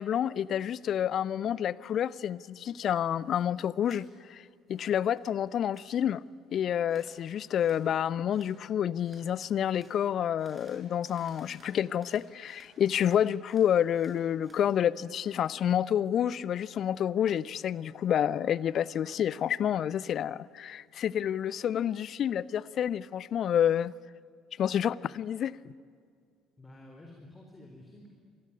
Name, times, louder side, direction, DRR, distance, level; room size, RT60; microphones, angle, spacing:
voice 1, 0.0-4.4 4.7-6.2 6.5-23.9 24.6-25.6, left 9 dB, 45° left, 0.6 m, -29 dB
sound 1, 3.8-4.0 4.4-5.2 5.5-5.9 6.9-7.2 7.6-7.8 8.3-8.5 9.0-9.3 9.7-9.9 10.4-12.7 13.0-14.6, right 2 dB, 20° right, 7.0 m, -59 dB
voice 2, 26.6-28.1, left 1 dB, 20° left, 4.0 m, -51 dB
26.5 x 20.0 x 9.9 m
figure-of-eight pair, 55°, 0 cm